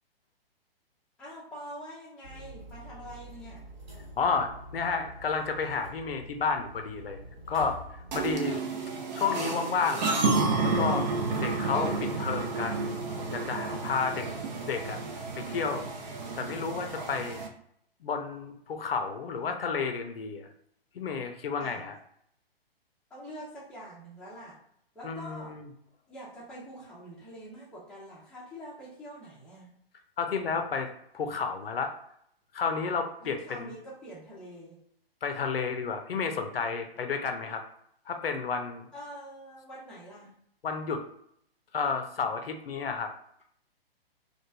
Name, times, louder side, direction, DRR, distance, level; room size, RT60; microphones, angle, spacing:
voice 1, 1.2-3.7 13.8-14.4 21.6-21.9 23.1-24.6 24.9-25.6 26.1-29.7 33.2-34.8 38.9-40.3, equal, 5° left, -8 dB, 0.5 m, -45 dB
sound 1, 2.2-8.4, equal, 70° right, 1.3 m, -46 dB
voice 2, 4.2-7.2 7.5-8.7 9.1-10.2 10.6-11.1 11.4-12.9 13.3-14.3 14.6-15.0 15.3-15.9 16.4-17.4 18.0-20.5 20.9-21.9 25.0-25.7 30.2-30.9 31.1-31.9 32.5-33.7 35.2-37.6 38.1-38.9 40.6-41.0 41.7-43.1, left 5 dB, 70° left, 6 dB, 0.6 m, -31 dB
sound 2, 8.1-17.5, right 3 dB, 45° right, 0.6 m, -31 dB
3.0 x 2.3 x 2.3 m, 0.70 s
figure-of-eight pair, 125°, 30 cm